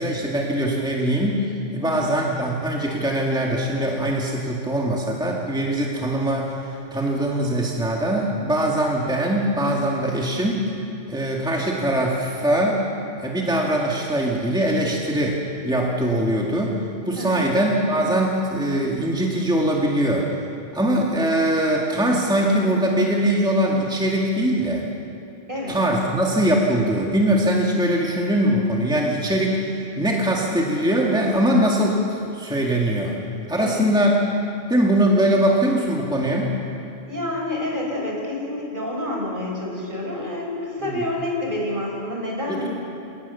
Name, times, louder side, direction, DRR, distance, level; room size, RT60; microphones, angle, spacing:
voice 1, 0.0-10.7 11.1-12.8 13.2-16.8 17.0-20.3 20.7-24.8 25.7-33.1 33.5-34.1 34.7-36.5 42.5-42.7, right 1 dB, 5° right, -3 dB, 2.3 m, -22 dB
voice 2, 1.8-2.1 17.1-17.5 25.5-25.8 33.5-33.8 37.0-42.7, left 1 dB, 45° right, -2 dB, 5.8 m, -28 dB
28.0 x 18.5 x 7.1 m, 2.6 s
omnidirectional pair, 1.2 m